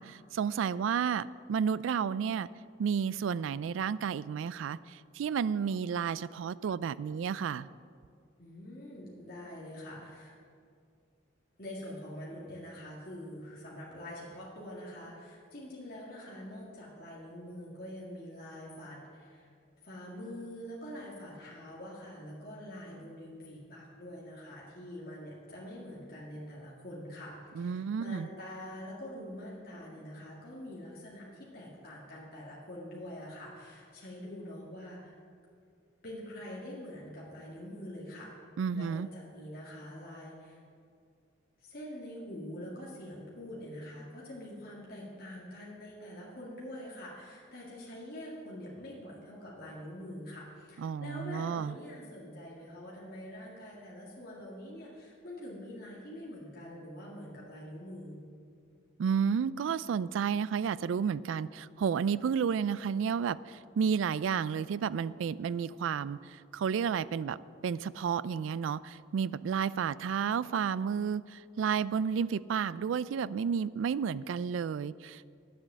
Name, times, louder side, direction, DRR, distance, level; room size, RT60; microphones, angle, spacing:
voice 1, 0.0-2.5 2.8-7.7 27.6-28.3 38.6-39.1 50.8-51.8 59.0-75.3, right 7 dB, 80° right, 19 dB, 0.3 m, -31 dB
voice 2, 8.4-10.3 11.6-19.5 19.8-35.1 36.0-38.3 38.7-40.6 41.6-58.2, left 1 dB, 50° left, -6 dB, 2.0 m, -45 dB
9.9 x 8.0 x 7.4 m, 2.3 s
head